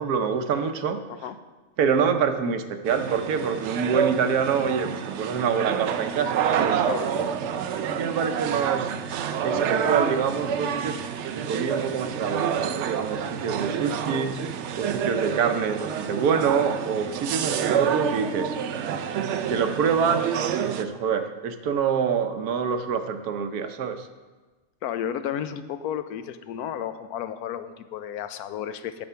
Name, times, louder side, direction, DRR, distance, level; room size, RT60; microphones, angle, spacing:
voice 1, 0.0-1.0 1.8-6.8 7.5-8.9 9.4-14.3 14.7-18.6 19.5-24.1, right 6 dB, 90° right, 8 dB, 1.3 m, -26 dB
sound 1, 2.9-20.8, right 8 dB, 65° right, 0.7 m, -28 dB
voice 2, 24.8-29.0, left 9 dB, 90° left, 11 dB, 1.1 m, -32 dB
9.2 x 7.0 x 5.6 m, 1.3 s
omnidirectional pair, 1.6 m